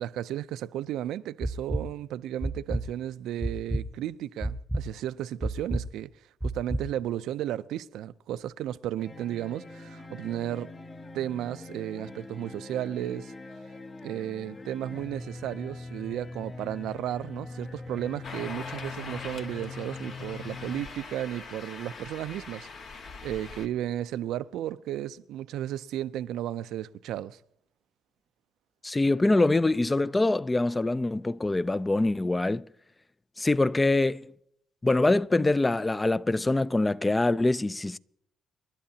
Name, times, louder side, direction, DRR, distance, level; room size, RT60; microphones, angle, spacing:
voice 1, 0.0-6.1 6.4-10.7 11.1-13.3 14.0-22.7 23.2-27.4, right 12 dB, 85° right, 0.4 m, -34 dB
sound 1, 1.4-1.8 2.4-2.8 3.4-3.8 4.4-4.8 5.4-5.8 6.4-6.8, right 1 dB, ahead, 0.9 m, -29 dB
sound 2, 9.0-20.8, left 3 dB, 35° left, 4.8 m, -42 dB
sound 3, 18.2-23.7, left 4 dB, 65° left, 1.4 m, -42 dB
voice 2, 28.8-32.6 33.4-34.3 34.8-38.0, left 2 dB, 20° left, 0.4 m, -24 dB
29.0 x 11.5 x 2.8 m
cardioid pair, 90°, 0 cm